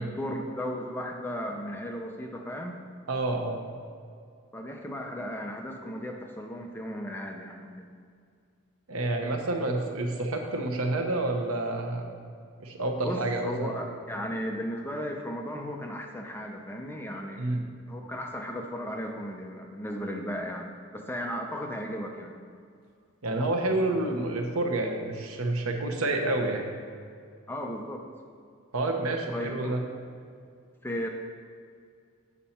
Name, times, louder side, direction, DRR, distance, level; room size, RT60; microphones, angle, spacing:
voice 1, 0.0-2.8 4.5-7.9 13.0-22.4 27.5-28.0 29.3-29.7 30.8-31.1, equal, 10° left, 2 dB, 0.5 m, -35 dB
voice 2, 3.1-3.6 8.9-12.1 12.6-13.7 17.4-17.6 23.2-26.7 28.7-29.8, right 2 dB, 85° right, 2 dB, 0.9 m, -28 dB
7.3 x 5.4 x 4.3 m, 2.3 s
head